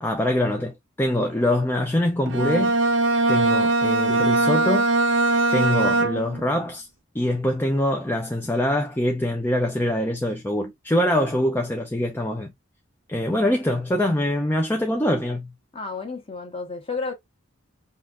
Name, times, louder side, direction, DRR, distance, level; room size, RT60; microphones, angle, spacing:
voice 1, 0.0-2.8 3.3-4.9 5.5-6.9 7.1-12.5 13.1-15.5, left 1 dB, 10° left, 0.5 m, -24 dB
Bowed string instrument, 2.3-6.5, right 2 dB, 65° right, 0.7 m, -21 dB
voice 2, 15.7-17.1, left 4 dB, 25° left, 1.3 m, -31 dB
5.5 x 2.5 x 2.5 m
head